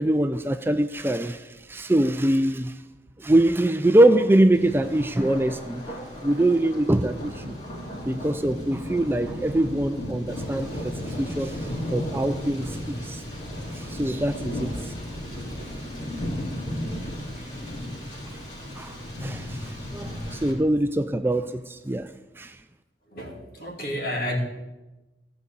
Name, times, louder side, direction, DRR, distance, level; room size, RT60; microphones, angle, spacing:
voice 1, 0.0-2.8 3.2-7.5 8.1-13.2 13.7-14.9 18.8-22.6, right 1 dB, 10° right, 0.4 m, -24 dB
Thunder, 4.5-20.5, equal, 40° left, 3.0 m, -34 dB
voice 2, 23.1-24.4, left 1 dB, 55° left, 2.6 m, -30 dB
15.5 x 5.3 x 8.5 m
head